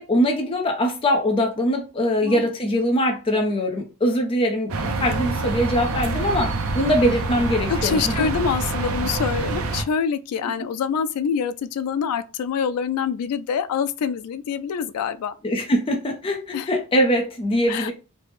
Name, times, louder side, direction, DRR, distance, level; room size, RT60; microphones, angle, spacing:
voice 1, 0.0-8.1 10.6-10.7 15.4-17.9, equal, 25° left, 0.5 m, -22 dB
sound 1, 4.7-9.8, right 3 dB, 65° right, 0.5 m, -26 dB
voice 2, 7.7-15.3 16.5-16.7 17.7-17.9, left 6 dB, 90° left, 0.3 m, -25 dB
3.2 x 2.0 x 3.0 m
head